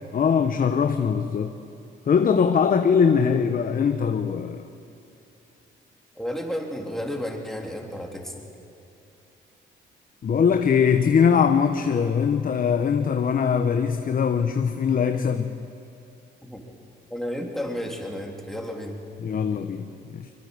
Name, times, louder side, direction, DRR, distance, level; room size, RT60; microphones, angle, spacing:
voice 1, 0.1-1.5 2.1-4.7 10.2-15.6 19.2-20.3, left 6 dB, 45° left, 1.0 m, -21 dB
voice 2, 6.2-8.4 16.4-16.6 17.1-19.0, equal, ahead, 3.5 m, -32 dB
23.5 x 22.5 x 6.7 m
cardioid pair, 90°, 20 cm